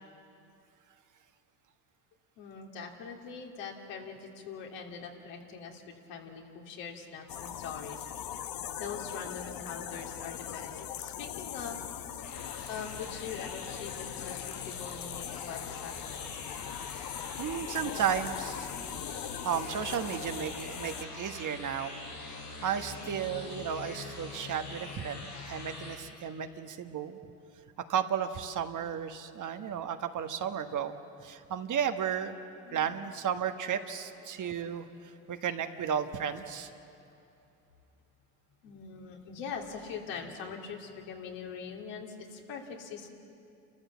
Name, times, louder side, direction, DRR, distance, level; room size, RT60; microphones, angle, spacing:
voice 1, 2.4-8.1 8.8-11.8 12.3-16.3 32.6-32.9 38.6-43.1, left 6 dB, 65° left, 1 dB, 3.0 m, -42 dB
sound 1, 7.3-21.0, left 10 dB, 45° left, 1.1 m, -40 dB
sound 2, 12.2-25.9, left 2 dB, 85° left, 6.5 m, -44 dB
voice 2, 17.4-18.7 19.1-22.0 22.6-27.2 27.9-32.4 32.7-34.9 35.3-36.7, right 8 dB, 40° right, 8 dB, 1.4 m, -33 dB
29.5 x 14.0 x 7.2 m, 2.7 s
hypercardioid pair, 75°, 46 cm